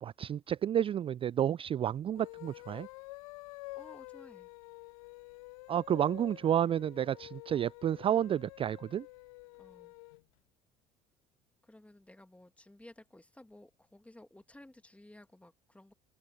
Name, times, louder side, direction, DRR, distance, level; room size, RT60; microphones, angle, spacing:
voice 1, 0.0-2.9 5.7-9.1, right 10 dB, 30° right, 0.4 m, -30 dB
sound 1, 2.1-10.2, left 22 dB, 70° left, 0.7 m, -49 dB
voice 2, 3.7-4.5 9.6-9.9 11.6-15.9, left 1 dB, 5° left, 2.5 m, -56 dB
figure-of-eight pair, 60°, 19 cm